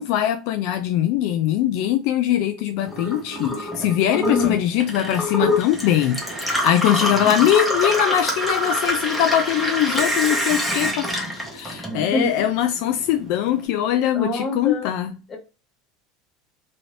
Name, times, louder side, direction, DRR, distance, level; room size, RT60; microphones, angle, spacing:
voice 1, 0.0-15.2, left 11 dB, 65° left, 0.3 m, -22 dB
Gurgling / Water tap faucet / Sink (filling or washing), 2.8-12.4 12.7-13.6, left 1 dB, ahead, 0.9 m, -25 dB
voice 2, 4.1-4.6 7.0-7.2 11.9-12.3 14.1-14.9 15.3-15.4, left 1 dB, 20° left, 1.1 m, -26 dB
2.7 x 2.7 x 3.1 m
supercardioid pair, 135°, 0 cm